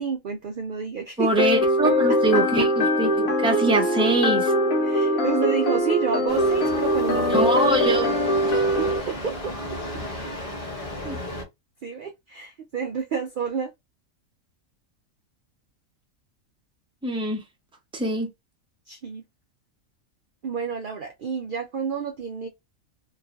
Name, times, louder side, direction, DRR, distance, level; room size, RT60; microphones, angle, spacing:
voice 1, 0.0-1.5 4.8-7.5 8.8-9.5 11.8-13.7 18.9-19.2 20.4-22.5, right 6 dB, 70° right, 0.4 m, -29 dB
voice 2, 1.2-4.5 7.3-8.5 11.0-11.2 17.0-17.4 17.9-18.3, right 2 dB, 5° right, 0.5 m, -24 dB
sound 1, 1.4-9.0, left 1 dB, 85° left, 1.4 m, -22 dB
sound 2, 6.3-11.4, left 1 dB, 25° left, 1.3 m, -34 dB
3.1 x 2.3 x 2.4 m
omnidirectional pair, 1.4 m